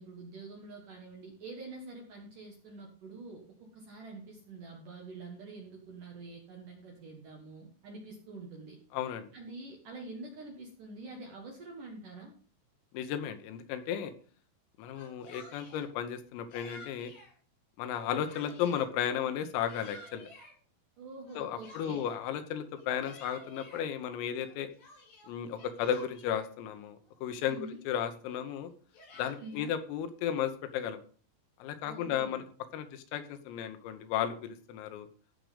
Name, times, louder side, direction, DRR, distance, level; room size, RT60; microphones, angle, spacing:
voice 1, 0.0-8.8 9.3-12.3 21.0-22.1 27.4-27.8 29.4-29.7 31.8-32.4, right 3 dB, 60° right, 1 dB, 2.2 m, -46 dB
voice 2, 8.9-9.3 12.9-14.1 14.8-17.1 17.8-20.3 21.4-24.7 25.3-27.6 27.9-28.7 29.2-31.0 31.6-32.4 32.7-35.1, left 9 dB, 85° left, 9 dB, 3.8 m, -34 dB
Yell, 14.8-15.9 16.5-17.3 17.8-18.9 19.4-20.5 21.3-22.2 22.7-23.8 24.4-26.5 27.1-27.2 27.4-27.9 28.7-29.7, left 2 dB, 70° left, 7.7 m, -52 dB
15.5 x 6.4 x 5.1 m, 0.43 s
omnidirectional pair, 5.9 m